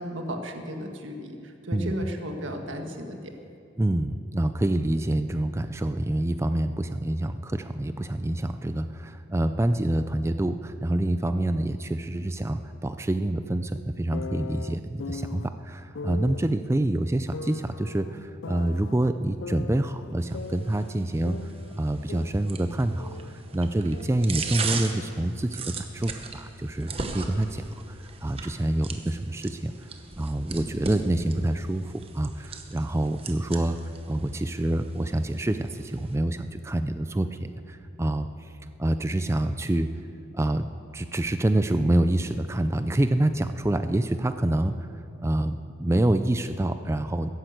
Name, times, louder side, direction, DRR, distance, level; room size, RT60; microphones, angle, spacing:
voice 1, 0.0-3.3, equal, 80° right, 4 dB, 1.7 m, -34 dB
voice 2, 3.8-21.5 21.8-29.7 30.1-33.8 34.1-38.5 38.8-39.9 40.3-40.7 40.9-44.9 45.2-47.3, right 1 dB, 15° right, 10 dB, 0.4 m, -27 dB
sound 1, 14.1-15.5 15.9-16.5 17.3-19.0 19.4-21.0 21.2-23.4 23.7-25.2, left 4 dB, 85° left, 0.5 m, -40 dB
sound 2, 20.2-36.2, right 4 dB, 30° right, 1.0 m, -39 dB
14.0 x 10.5 x 8.0 m, 2.5 s
head